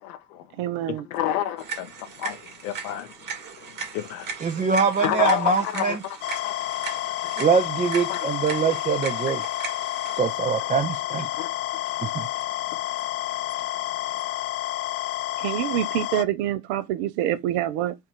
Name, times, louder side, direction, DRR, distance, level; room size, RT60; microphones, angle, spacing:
voice 1, 0.0-0.5 1.1-3.1 3.6-4.4 5.0-6.2 6.4-6.5 7.2-7.3 8.1-8.3 10.6-10.7 11.3-11.8, left 11 dB, 65° left, 0.9 m, -30 dB
voice 2, 0.6-1.1 15.4-17.9, right 12 dB, 60° right, 0.8 m, -26 dB
sound 1, 1.6-10.2, right 5 dB, 40° right, 2.0 m, -38 dB
voice 3, 4.4-6.0 7.4-9.4 10.1-11.3 12.0-12.3, right 5 dB, 15° right, 0.6 m, -23 dB
sound 2, 6.2-16.2, left 14 dB, 35° left, 0.4 m, -30 dB
4.6 x 2.5 x 4.5 m
hypercardioid pair, 80°, 48 cm